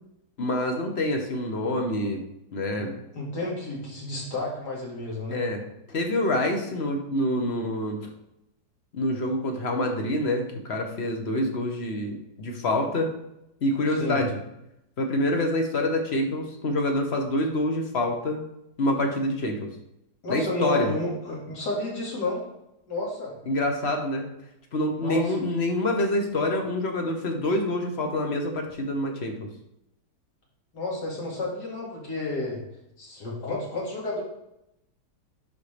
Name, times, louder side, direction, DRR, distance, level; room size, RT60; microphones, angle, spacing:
voice 1, 0.4-2.2 2.5-2.9 5.3-5.6 5.9-8.1 8.9-13.1 13.6-14.4 15.0-18.4 18.8-19.7 20.3-20.9 23.5-24.3 24.7-29.5, left 1 dB, 45° left, 3 dB, 1.1 m, -26 dB
voice 2, 2.8-5.4 13.9-14.2 20.2-22.4 22.9-23.3 25.0-25.3 30.7-32.6 33.0-34.2, left 2 dB, 80° left, -3 dB, 2.7 m, -31 dB
10.5 x 4.0 x 3.4 m, 0.84 s
omnidirectional pair, 1.8 m